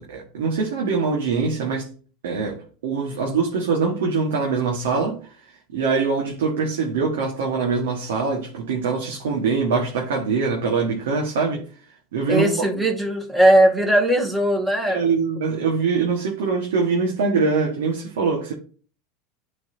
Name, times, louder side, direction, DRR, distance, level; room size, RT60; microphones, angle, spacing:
voice 1, 0.0-1.9 2.2-11.6 12.1-12.5 14.9-18.5, right 4 dB, 85° right, 1.3 m, -23 dB
voice 2, 12.3-15.0, right 1 dB, 10° right, 2.1 m, -18 dB
10.5 x 4.0 x 2.6 m
hypercardioid pair, 100°, 0 cm